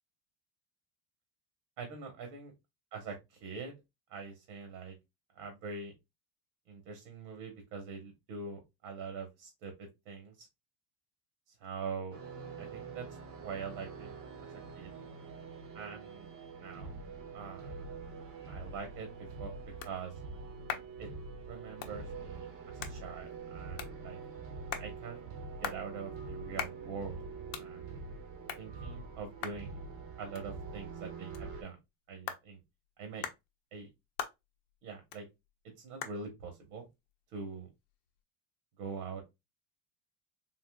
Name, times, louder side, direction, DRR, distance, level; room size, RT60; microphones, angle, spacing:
voice 1, 1.8-2.5 2.9-3.7 4.1-5.0 5.3-5.9 6.7-10.5 11.5-12.2 12.6-13.1 13.4-14.9 15.7-16.3 16.6-17.0 17.3-17.9 18.5-19.5 19.8-20.2 21.0-21.1 21.5-24.2 24.8-27.3 27.6-28.0 28.6-29.8 30.2-31.8 32.1-32.6 33.0-33.3 33.7-33.9 34.8-35.3 35.8-36.9 37.3-37.7 38.8-39.2, right 5 dB, 70° right, 4 dB, 1.1 m, -44 dB
sound 1, 12.1-31.6, right 4 dB, 35° right, 0.7 m, -45 dB
sound 2, 18.9-38.2, left 9 dB, 90° left, 0.7 m, -47 dB
3.7 x 2.7 x 2.2 m, 0.21 s
cardioid pair, 125°, 37 cm